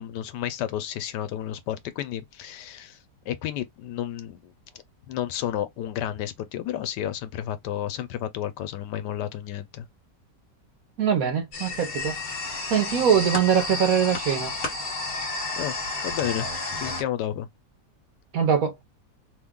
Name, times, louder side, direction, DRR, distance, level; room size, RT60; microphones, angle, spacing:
voice 1, 0.0-3.0 3.3-4.5 5.1-9.8 15.6-15.8 16.0-16.5 16.8-17.5, left 11 dB, 80° left, 1.2 m, -31 dB
voice 2, 11.0-12.2 12.7-14.5 18.3-18.7, right 8 dB, 65° right, 1.0 m, -22 dB
sound 1, 11.5-17.0, left 3 dB, 50° left, 1.4 m, -31 dB
3.0 x 2.3 x 3.5 m
omnidirectional pair, 1.8 m